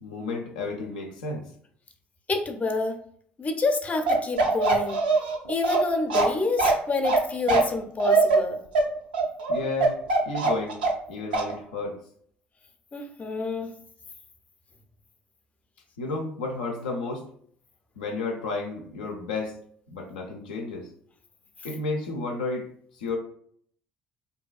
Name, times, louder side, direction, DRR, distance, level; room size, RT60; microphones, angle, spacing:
voice 1, 0.0-1.5 9.5-10.0 10.3-10.8 11.1-12.0 16.0-17.3 18.0-19.6 19.9-20.9 21.6-23.2, left 3 dB, 80° left, 2 dB, 0.4 m, -32 dB
voice 2, 2.3-3.0 3.4-5.0 5.5-8.6 12.9-13.7, left 3 dB, 30° left, 5 dB, 0.5 m, -28 dB
Bark, 4.1-11.1 11.3-11.5, right 3 dB, 85° right, 0.4 m, -22 dB
2.7 x 2.3 x 2.3 m, 0.62 s
hypercardioid pair, 55°, 5 cm